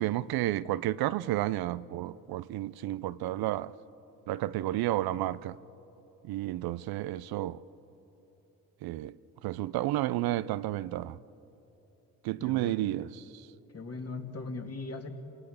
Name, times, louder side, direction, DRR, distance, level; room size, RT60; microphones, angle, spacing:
voice 1, 0.0-3.7 4.3-5.6 6.3-7.6 8.8-9.1 9.4-11.2 12.2-13.1, right 15 dB, 70° right, 0.6 m, -31 dB
voice 2, 12.4-12.9 13.7-15.1, left 3 dB, 40° left, 2.6 m, -39 dB
27.5 x 19.0 x 8.0 m
supercardioid pair, 60°, 38 cm